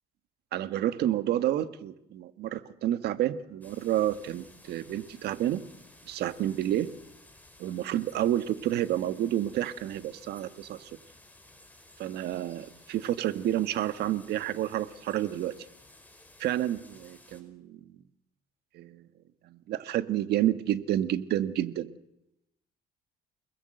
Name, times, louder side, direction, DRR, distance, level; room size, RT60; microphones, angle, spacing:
voice 1, 0.5-5.6 6.1-6.9 7.6-10.9 12.0-15.5 16.4-17.9 18.7-19.1 19.4-21.9, right 12 dB, 75° right, 12 dB, 1.6 m, -30 dB
sound 1, 3.6-17.4, left 2 dB, 10° left, 5.5 m, -56 dB
29.5 x 20.0 x 7.8 m, 0.83 s
cardioid pair, 110°, 17 cm